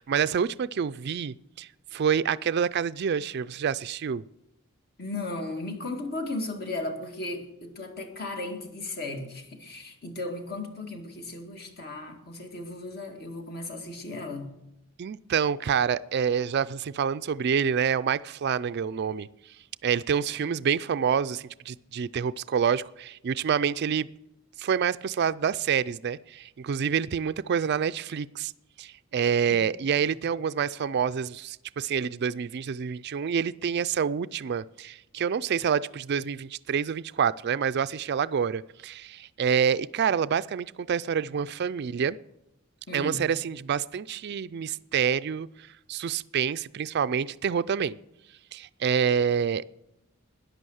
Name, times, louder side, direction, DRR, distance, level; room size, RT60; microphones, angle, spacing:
voice 1, 0.0-4.2 15.0-19.3 19.8-24.1 24.6-28.5 28.8-42.2 42.9-45.5 45.9-48.0 48.5-49.6, right 7 dB, 50° right, 0.4 m, -27 dB
voice 2, 5.0-14.5 20.4-20.5 29.5-29.6 42.9-43.2, left 2 dB, 50° left, 2.0 m, -36 dB
13.0 x 10.5 x 6.4 m
head